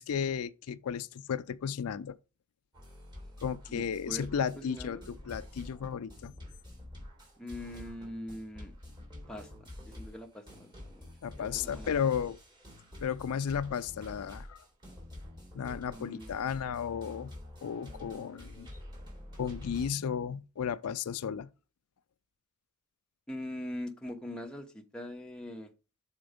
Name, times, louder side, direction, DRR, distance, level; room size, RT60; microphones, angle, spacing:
voice 1, 0.0-2.2 3.4-6.3 11.2-12.4 13.0-14.6 15.5-17.3 17.6-18.7 19.4-21.5, left 7 dB, 85° left, 0.4 m, -34 dB
sound 1, 2.7-19.9, left 1 dB, 20° right, 3.3 m, -48 dB
voice 2, 3.7-4.3 4.6-5.0 7.4-8.7 9.3-11.1 11.4-11.9 15.9-16.3 23.3-25.7, left 1 dB, 5° left, 0.9 m, -42 dB
6.9 x 4.4 x 5.1 m
head